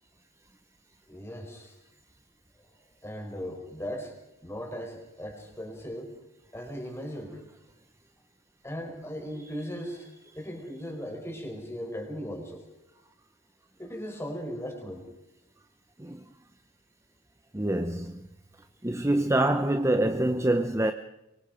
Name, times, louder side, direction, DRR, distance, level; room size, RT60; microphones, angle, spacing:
voice 1, 1.1-1.7 3.0-4.2 4.4-6.1 6.5-7.4 8.6-10.1 10.3-12.7 13.8-15.0, equal, 10° left, 4.7 m, -38 dB
voice 2, 17.5-18.3 18.8-20.9, right 1 dB, 15° right, 0.7 m, -25 dB
25.5 x 23.5 x 5.2 m
head